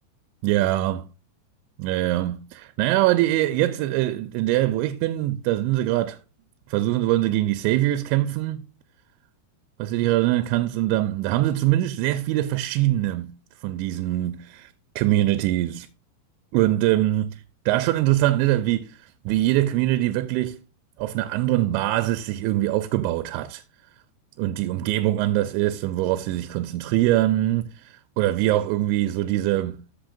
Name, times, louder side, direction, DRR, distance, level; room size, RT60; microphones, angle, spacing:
voice 1, 0.4-1.1 1.8-6.2 6.7-8.6 9.8-13.3 13.6-14.7 15.0-15.9 16.5-17.3 17.7-19.0 19.3-20.6 21.0-23.6 24.4-29.8, right 15 dB, 90° right, 2.9 m, -23 dB
15.0 x 5.1 x 2.6 m
omnidirectional pair, 5.1 m